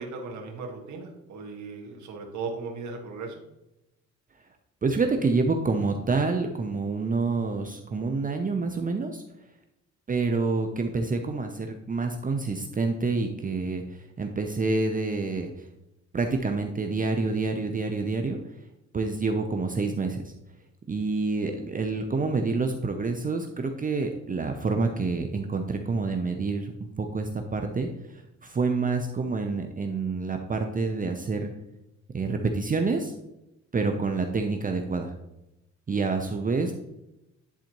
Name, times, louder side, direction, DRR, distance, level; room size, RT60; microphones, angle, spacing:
voice 1, 0.0-3.4, right 4 dB, 70° right, 1 dB, 1.6 m, -37 dB
voice 2, 4.8-9.2 10.1-13.8 14.2-15.5 16.1-18.4 18.9-20.2 20.9-26.7 27.0-27.9 28.4-31.5 32.1-33.1 33.7-35.1 35.9-36.7, right 3 dB, 30° right, 5 dB, 0.6 m, -27 dB
10.5 x 4.2 x 3.0 m, 0.91 s
cardioid pair, 90°, 30 cm